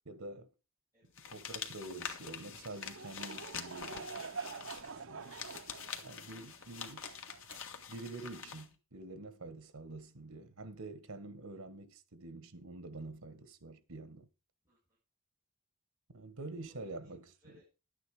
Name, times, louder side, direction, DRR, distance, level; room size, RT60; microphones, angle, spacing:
voice 1, 0.0-0.5 1.3-4.0 5.0-5.3 6.0-7.1 7.9-14.3 16.1-17.3, right 2 dB, 85° right, 1.5 m, -47 dB
sound 1, 1.2-8.7, left 7 dB, 65° left, 1.6 m, -46 dB
Laughter / Crowd, 2.4-8.2, right 4 dB, 65° right, 0.9 m, -47 dB
voice 2, 14.6-15.0 16.6-17.7, left 1 dB, 15° right, 6.6 m, -68 dB
11.5 x 9.2 x 4.9 m
head